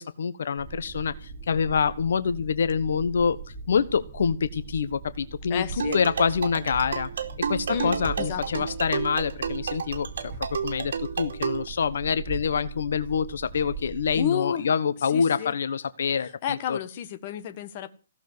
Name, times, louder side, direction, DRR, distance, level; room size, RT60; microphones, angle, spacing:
voice 1, 0.0-3.4 3.7-7.1 7.5-10.3 10.6-16.8, left 6 dB, 70° left, 1.2 m, -26 dB
sound 1, 0.6-14.2, right 5 dB, 15° right, 7.9 m, -40 dB
voice 2, 5.5-6.0 7.7-8.7 14.1-14.6 15.1-15.5 16.2-17.9, left 9 dB, 35° left, 1.5 m, -31 dB
sound 2, 5.8-11.7, right 6 dB, 65° right, 2.6 m, -31 dB
16.5 x 7.3 x 9.6 m
hypercardioid pair, 165°, 0 cm